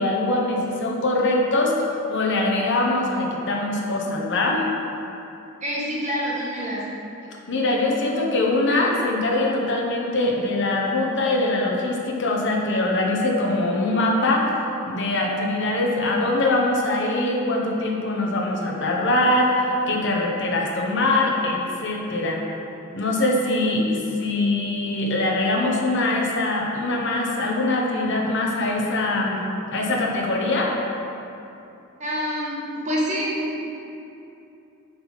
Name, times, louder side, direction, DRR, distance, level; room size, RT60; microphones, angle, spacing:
voice 1, 0.0-4.6 7.5-14.5 14.8-19.5 19.9-22.4 22.9-29.4 29.7-30.8, left 2 dB, 55° left, -1 dB, 1.1 m, -23 dB
voice 2, 5.6-6.8 32.0-32.6 32.8-33.6, equal, 35° right, -6 dB, 1.5 m, -26 dB
7.7 x 4.1 x 6.2 m, 2.8 s
head